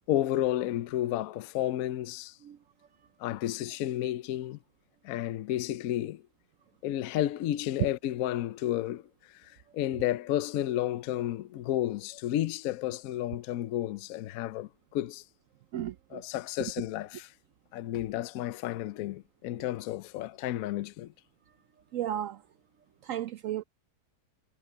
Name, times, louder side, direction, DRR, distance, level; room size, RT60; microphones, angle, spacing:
voice 1, 0.1-2.4 3.2-4.6 5.0-6.2 6.8-15.2 16.1-17.3 17.7-21.1, left 13 dB, 65° left, 0.9 m, -32 dB
voice 2, 15.7-16.2 21.9-22.4 23.0-23.6, right 11 dB, 75° right, 0.7 m, -34 dB
omnidirectional pair, 1.9 m